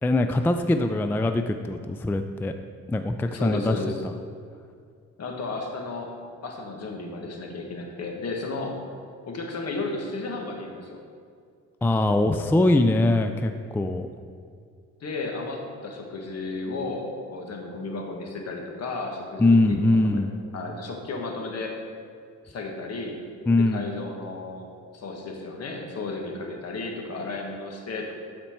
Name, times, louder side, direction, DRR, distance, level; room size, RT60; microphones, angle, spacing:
voice 1, 0.0-2.5 2.9-3.8 11.8-14.1 19.4-20.3 23.5-23.9, left 2 dB, 5° left, 7 dB, 0.3 m, -22 dB
voice 2, 3.3-3.9 5.2-6.1 6.4-8.8 9.3-11.0 15.0-20.2 20.5-21.8 22.4-23.2 23.6-24.7 24.9-28.1, left 3 dB, 55° left, 1 dB, 1.5 m, -33 dB
12.5 x 4.3 x 4.5 m, 2.2 s
cardioid pair, 90°, 30 cm